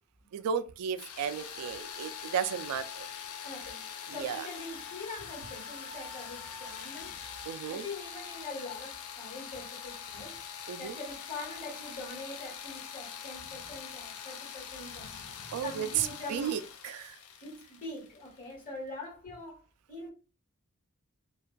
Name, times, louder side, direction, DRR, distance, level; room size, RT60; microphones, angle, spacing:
voice 1, 0.3-3.1 4.1-4.5 7.5-7.8 10.7-11.0 15.5-17.2, right 8 dB, 85° right, 0.3 m, -34 dB
sound 1, 1.0-18.7, left 7 dB, 75° left, 0.4 m, -43 dB
voice 2, 3.4-3.8 4.1-7.2 7.7-10.4 10.8-16.6 17.4-19.6 19.9-20.1, left 2 dB, 40° left, 1.4 m, -43 dB
2.5 x 2.2 x 2.2 m
head